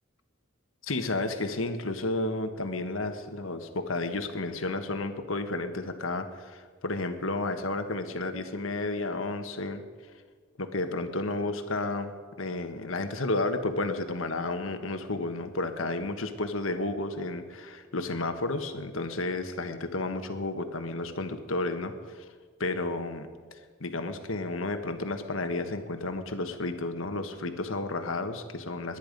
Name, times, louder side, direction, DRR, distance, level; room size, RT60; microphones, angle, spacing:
voice 1, 0.8-9.8 10.6-12.1 12.4-22.3 22.6-29.0, left 2 dB, 90° left, 8 dB, 1.4 m, -32 dB
21.5 x 10.5 x 5.3 m, 1.5 s
head